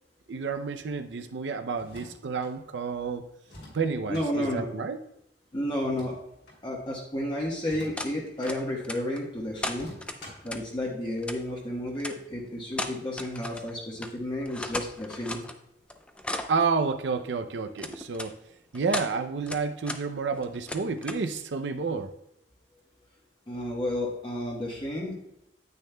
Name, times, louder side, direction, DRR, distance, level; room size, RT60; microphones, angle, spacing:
voice 1, 0.3-3.3 3.7-5.0 16.5-18.4 18.7-22.1, right 4 dB, 90° right, 7 dB, 0.5 m, -30 dB
sound 1, 1.8-2.5 3.4-4.3 5.8-6.6 7.6-8.6 9.7-10.5, left 1 dB, 70° left, 2.8 m, -47 dB
voice 2, 4.1-4.7 5.5-6.1 6.6-9.9 10.4-15.4 23.5-25.2, left 1 dB, 25° left, -3 dB, 1.2 m, -31 dB
sound 2, 8.0-8.1 8.5-9.2 9.6-10.6 11.2-11.4 12.0-12.2 12.7-13.7 14.0-14.1 14.4-15.6 15.9-16.6 17.8-18.3 18.7-19.1 19.5-20.0 20.3-21.3, left 1 dB, 5° left, 0.4 m, -35 dB
9.4 x 8.5 x 2.2 m, 0.81 s
head